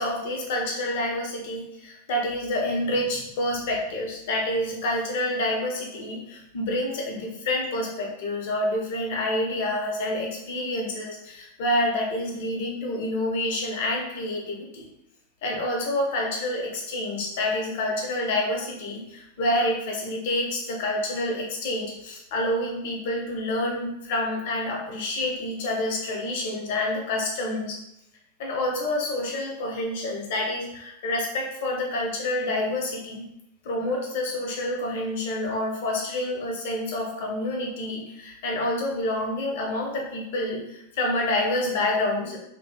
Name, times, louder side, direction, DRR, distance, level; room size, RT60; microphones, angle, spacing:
voice 1, 0.0-14.9 15.4-27.8 28.4-33.3 33.6-42.4, left 1 dB, 50° left, 0 dB, 0.6 m, -28 dB
2.6 x 2.5 x 2.2 m, 0.83 s
figure-of-eight pair, 90°, 0 cm